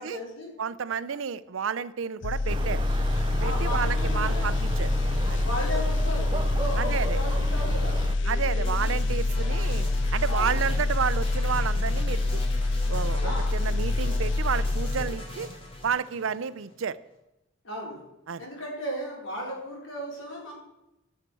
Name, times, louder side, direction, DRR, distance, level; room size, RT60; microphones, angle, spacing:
voice 1, 0.0-0.5 1.1-1.2 3.4-4.5 5.4-9.0 10.3-10.6 13.2-13.6 17.6-18.0 18.4-20.5, equal, 85° left, -3 dB, 4.4 m, -36 dB
voice 2, 0.6-2.8 3.4-4.9 5.3-5.4 6.8-7.2 8.3-12.4 12.9-15.5 15.8-17.0 18.3-18.5, right 6 dB, 85° right, 16 dB, 0.5 m, -31 dB
sound 1, 2.2-15.4 15.7-15.9, left 2 dB, 65° left, 0.4 m, -26 dB
sound 2, 2.5-8.2, right 2 dB, 25° right, 0.4 m, -33 dB
sound 3, 8.6-16.7, left 1 dB, 30° left, 2.6 m, -40 dB
13.5 x 6.6 x 6.2 m, 0.92 s
head